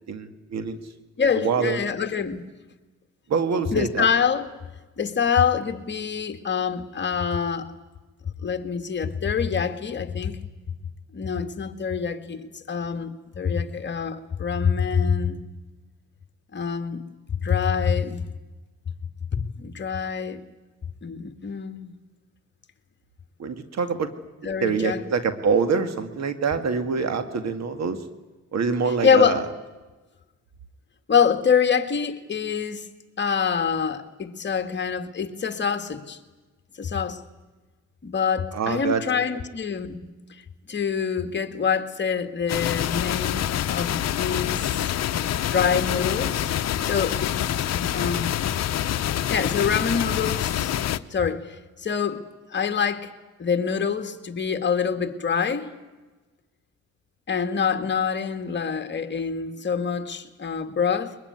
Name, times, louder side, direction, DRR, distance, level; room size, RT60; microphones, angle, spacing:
voice 1, 0.1-0.8 1.4-1.8 3.3-4.1 23.4-24.1 24.6-28.0 28.5-29.4 38.5-39.0, right 5 dB, 60° right, 2.2 m, -25 dB
voice 2, 1.2-2.5 3.7-4.5 5.0-7.7 8.4-10.4 11.1-15.4 16.5-17.0 17.3-18.2 19.3-20.4 21.0-21.9 24.4-25.0 29.0-29.4 31.1-32.9 33.2-36.2 36.8-37.2 38.0-40.0 40.3-40.4 40.7-44.9 45.5-48.4 49.3-50.8 51.1-52.2 52.5-53.1 53.4-55.7 57.3-61.2, left 6 dB, 35° left, 1.9 m, -25 dB
sound 1, 42.5-51.0, left 11 dB, 60° left, 0.9 m, -26 dB
22.0 x 21.5 x 9.6 m
cardioid pair, 90°, 30 cm